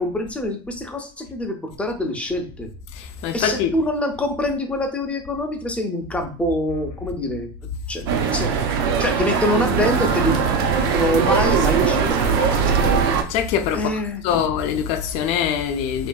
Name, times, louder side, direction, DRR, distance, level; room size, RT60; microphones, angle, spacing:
voice 1, 0.0-2.7 3.3-7.5 7.9-10.4 10.9-12.2 12.6-13.0 13.7-14.4, left 1 dB, 10° left, 0.6 m, -25 dB
voice 2, 2.9-3.7 13.3-13.9 14.2-16.1, left 8 dB, 55° left, 0.5 m, -23 dB
sound 1, 8.1-13.2, right 6 dB, 70° right, 0.5 m, -20 dB
2.7 x 2.5 x 2.3 m
hypercardioid pair, 95°, 12 cm